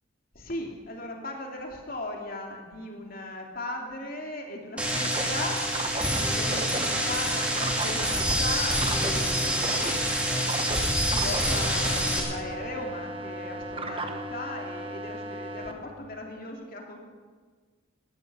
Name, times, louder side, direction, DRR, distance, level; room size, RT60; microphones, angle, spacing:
voice 1, 0.3-5.6 6.2-9.6 10.2-17.0, left 2 dB, 45° left, 1 dB, 2.6 m, -37 dB
sound 1, 4.8-12.2, equal, 5° right, 2.5 m, -27 dB
sound 2, 4.8-15.7, right 2 dB, 25° right, 1.1 m, -35 dB
18.5 x 13.0 x 5.5 m, 1.5 s
head